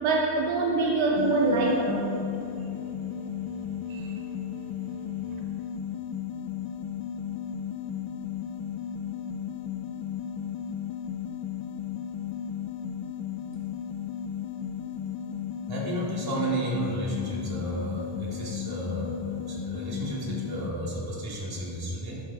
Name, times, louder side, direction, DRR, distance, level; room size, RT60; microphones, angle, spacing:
voice 1, 0.0-2.3 3.9-4.1, right 2 dB, 90° right, 0 dB, 1.2 m, -25 dB
sound 1, 1.1-20.7, left 8 dB, 85° left, 0.6 m, -35 dB
voice 2, 15.5-22.2, right 1 dB, 55° right, -4 dB, 2.6 m, -32 dB
12.0 x 7.1 x 4.8 m, 2.9 s
cardioid pair, 145°, 46 cm